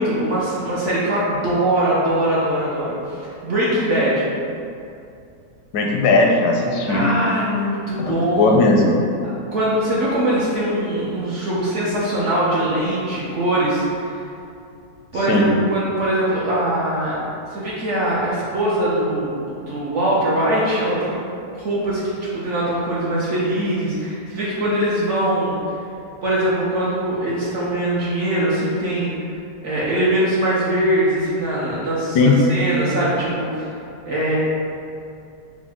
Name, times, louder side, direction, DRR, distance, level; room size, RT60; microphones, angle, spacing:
voice 1, 0.0-4.3 6.9-8.6 9.5-14.2 15.1-17.2 17.5-21.2 21.5-25.6 26.2-29.1 29.6-33.7 34.0-34.4, right 1 dB, 65° right, -7 dB, 0.8 m, -22 dB
voice 2, 5.7-7.1 8.0-9.0 15.3-15.5 32.1-32.4, left 3 dB, 85° left, 0 dB, 1.2 m, -17 dB
4.9 x 2.1 x 3.4 m, 2.6 s
omnidirectional pair, 1.7 m